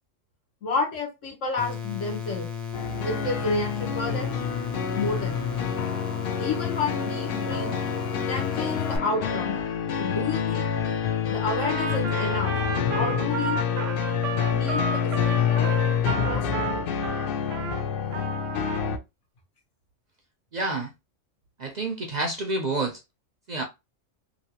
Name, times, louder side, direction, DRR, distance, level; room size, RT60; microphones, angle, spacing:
voice 1, 0.6-2.5 3.0-4.3 4.9-5.4 6.4-7.7 8.3-9.6 10.0-10.7 11.3-12.5 12.9-13.6 14.5-15.7 16.0-16.9, left 3 dB, 80° left, 1.5 m, -30 dB
sound 1, 1.6-9.0, left 6 dB, ahead, 0.4 m, -34 dB
sound 2, 2.7-19.0, left 7 dB, 60° left, 0.6 m, -27 dB
Trumpet, 11.6-17.8 18.1-18.9, right 5 dB, 90° right, 1.0 m, -32 dB
voice 2, 20.5-20.9 21.6-23.0 23.5-23.6, right 2 dB, 50° right, 0.5 m, -28 dB
3.1 x 2.6 x 2.8 m
omnidirectional pair, 1.3 m